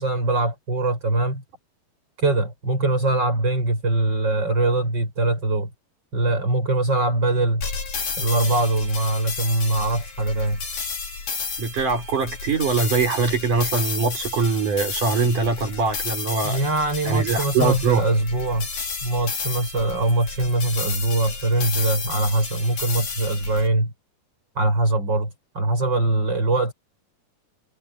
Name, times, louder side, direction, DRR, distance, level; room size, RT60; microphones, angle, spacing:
voice 1, 0.0-1.4 2.2-5.7 6.1-7.6 8.2-10.6 16.4-18.7 19.0-23.9 24.6-26.7, right 2 dB, 30° right, 7.5 m, -22 dB
sound 1, 7.6-23.7, left 5 dB, 70° left, 6.4 m, -32 dB
voice 2, 11.6-16.6 17.0-18.0, right 4 dB, 65° right, 6.4 m, -22 dB
omnidirectional pair, 4.0 m